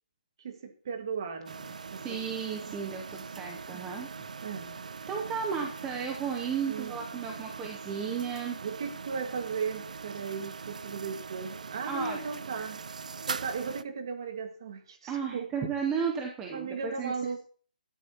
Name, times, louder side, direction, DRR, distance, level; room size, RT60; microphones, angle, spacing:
voice 1, 0.4-2.4 2.7-2.8 3.7-3.9 4.4-4.8 6.7-6.9 8.6-12.8 13.2-15.5 16.5-17.4, right 5 dB, 30° right, 6 dB, 1.7 m, -37 dB
sound 1, 1.5-13.8, right 5 dB, 50° right, 0.6 m, -41 dB
voice 2, 2.0-4.1 5.1-8.6 11.9-12.2 15.1-17.1, right 6 dB, 5° right, 1 dB, 0.7 m, -34 dB
17.5 x 13.0 x 2.9 m, 0.43 s
hypercardioid pair, 180°, 5 cm